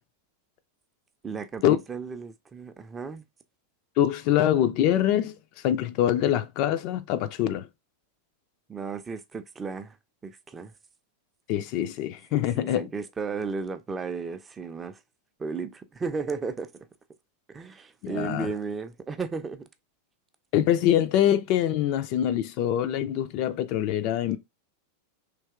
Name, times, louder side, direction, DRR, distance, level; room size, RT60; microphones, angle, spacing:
voice 1, 1.2-3.2 8.7-10.0 10.2-10.7 12.5-15.0 15.4-16.7 17.5-19.7, right 5 dB, 15° right, 0.4 m, -34 dB
voice 2, 4.0-5.3 5.6-7.7 11.5-12.9 18.0-18.5 20.5-24.4, left 11 dB, 45° left, 0.4 m, -24 dB
3.3 x 2.9 x 3.4 m
figure-of-eight pair, 90°, 0 cm